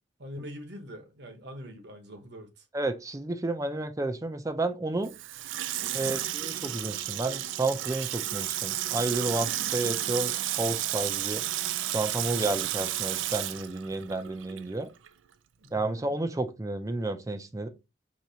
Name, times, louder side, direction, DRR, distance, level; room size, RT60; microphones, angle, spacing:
voice 1, 0.2-2.6 5.9-6.2 15.6-16.2, equal, 60° right, 0.9 m, -44 dB
voice 2, 2.7-5.1 5.9-11.4 11.9-14.9 15.7-17.7, right 2 dB, 15° right, 0.4 m, -31 dB
Water tap faucet / Sink (filling or washing), 5.0-14.8 15.1-15.2, right 13 dB, 80° right, 0.4 m, -32 dB
4.6 x 2.9 x 2.7 m
head